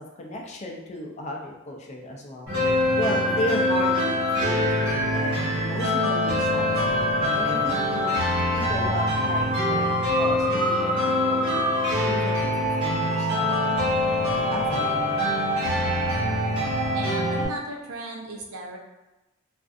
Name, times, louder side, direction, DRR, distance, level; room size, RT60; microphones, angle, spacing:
voice 1, 0.0-2.5 3.0-8.2 8.5-12.5 12.8-13.8 14.5-15.2, left 1 dB, 30° left, 0 dB, 0.3 m, -34 dB
sound 1, 2.5-17.5, left 1 dB, 55° right, 1.5 m, -24 dB
voice 2, 16.9-18.8, right 1 dB, 90° right, 1 dB, 0.5 m, -36 dB
2.4 x 2.3 x 2.5 m, 1.0 s
head